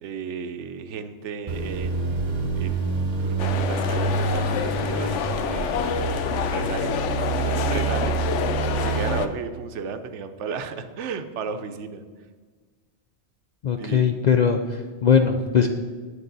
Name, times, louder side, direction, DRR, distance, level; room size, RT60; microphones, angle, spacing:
voice 1, 0.0-7.0 7.4-12.0 13.8-14.1, right 6 dB, 80° right, 9 dB, 0.9 m, -34 dB
sound 1, 1.5-9.2, right 4 dB, 40° right, 0.8 m, -27 dB
sound 2, 3.4-9.3, left 7 dB, 90° left, 0.9 m, -28 dB
voice 2, 13.6-15.7, left 7 dB, 60° left, 5 dB, 0.4 m, -20 dB
9.0 x 6.8 x 3.9 m, 1.5 s
omnidirectional pair, 1.2 m